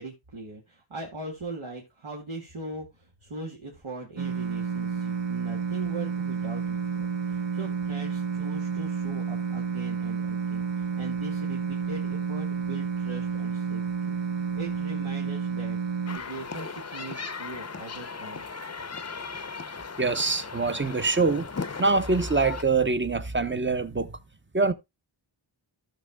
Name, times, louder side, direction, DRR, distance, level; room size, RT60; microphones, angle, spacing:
voice 1, 0.0-14.2 14.5-15.8 16.1-18.5, right 2 dB, 85° right, 2.1 m, -40 dB
sound 1, 4.2-16.2, right 6 dB, 65° right, 0.9 m, -30 dB
sound 2, 16.1-22.6, left 4 dB, 35° left, 0.7 m, -37 dB
voice 2, 20.0-21.5 21.8-24.2 24.5-24.7, right 3 dB, 25° right, 0.8 m, -24 dB
15.0 x 6.4 x 2.2 m
wide cardioid pair, 65°, 47 cm